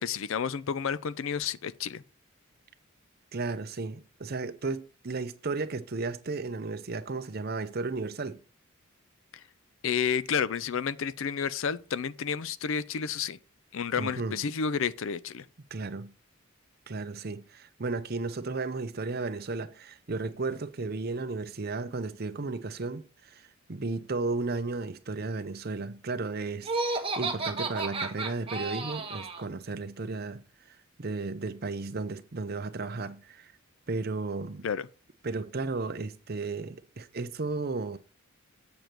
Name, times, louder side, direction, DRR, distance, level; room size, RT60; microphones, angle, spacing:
voice 1, 0.0-2.0 9.8-13.4 13.7-15.5 34.6-34.9, left 6 dB, 65° left, 0.4 m, -30 dB
voice 2, 3.3-8.4 14.0-14.4 15.7-16.1 16.9-30.4 30.7-33.5 33.9-34.7 35.2-38.0, right 3 dB, 45° right, 0.6 m, -34 dB
Laughter, 26.6-29.4, right 3 dB, 25° right, 1.2 m, -32 dB
7.8 x 7.0 x 4.5 m
head